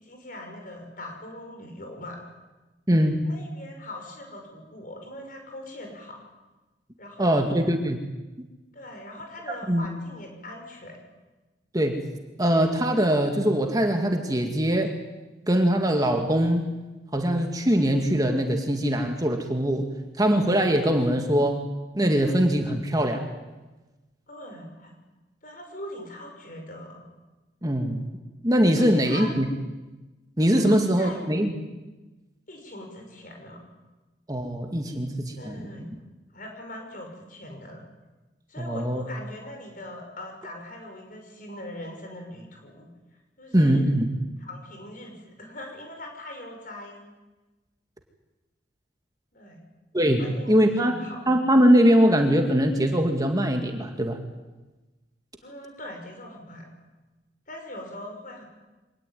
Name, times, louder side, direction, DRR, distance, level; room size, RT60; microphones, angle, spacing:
voice 1, 0.0-2.2 3.2-6.2 7.0-7.6 8.7-10.9 24.3-25.0 25.4-27.0 28.8-29.3 30.6-31.2 32.5-33.6 35.4-35.9 36.3-37.8 38.5-42.9 43.4-43.9 44.4-47.0 49.3-49.6 50.2-51.2 55.4-56.7 57.5-58.4, left 1 dB, 45° left, 3 dB, 6.2 m, -41 dB
voice 2, 2.9-3.2 7.2-8.0 9.7-9.8 11.7-12.1 12.4-15.0 15.5-16.6 17.1-19.9 20.2-21.6 21.9-23.2 27.6-28.0 28.4-29.5 30.4-31.5 34.3-35.7 38.6-39.0 43.5-44.1 49.9-51.0 51.3-54.2, equal, 20° right, 4 dB, 2.0 m, -22 dB
25.0 x 19.0 x 9.3 m, 1.1 s
head